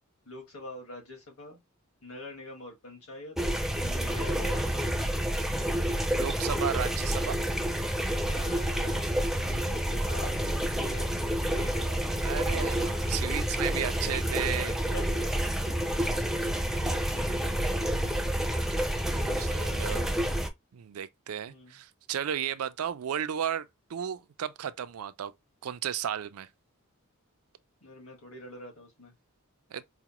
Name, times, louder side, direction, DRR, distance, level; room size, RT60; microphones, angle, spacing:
voice 1, 0.3-1.6 2.0-3.4 3.8-5.0 8.2-11.2 11.5-12.1 12.3-12.4 13.8-13.9 14.9-16.4 16.8-17.5 18.0-18.7 19.1-20.3 21.5-21.8 27.8-29.1, left 1 dB, 70° left, 1.8 m, -46 dB
sound 1, 3.4-20.5, right 1 dB, ahead, 0.4 m, -29 dB
voice 2, 6.1-7.4 12.2-14.8 16.7-16.8 19.4-20.1 20.7-25.3 25.6-26.5 29.7-29.8, right 9 dB, 75° right, 0.4 m, -34 dB
4.8 x 2.0 x 2.9 m
head